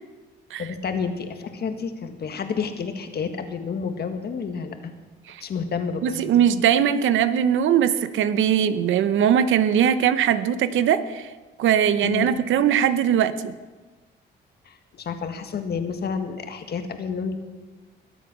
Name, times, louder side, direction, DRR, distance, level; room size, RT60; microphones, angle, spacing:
voice 1, 0.6-4.9 5.4-6.4 12.0-12.3 14.7-17.4, left 6 dB, 55° left, 7 dB, 1.7 m, -30 dB
voice 2, 6.0-11.3 11.6-13.6, right 9 dB, 80° right, 12 dB, 0.9 m, -20 dB
21.5 x 8.2 x 6.1 m, 1.2 s
cardioid pair, 90°, 20 cm